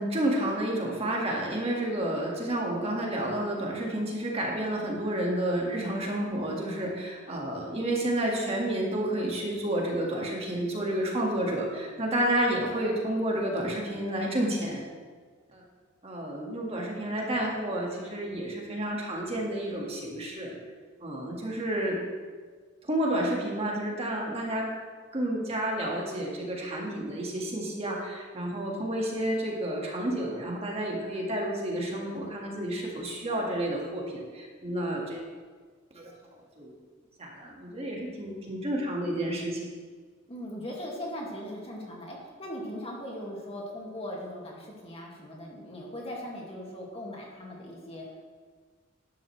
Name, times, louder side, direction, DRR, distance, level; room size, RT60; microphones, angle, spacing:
voice 1, 0.0-14.9 15.5-15.6 16.0-20.5 21.0-22.0 22.8-24.7 25.1-35.3 35.9-36.7 37.2-39.6, right 1 dB, 30° right, -2 dB, 1.8 m, -30 dB
voice 2, 40.3-48.2, equal, 30° left, -2 dB, 2.0 m, -39 dB
12.0 x 10.5 x 3.2 m, 1.5 s
head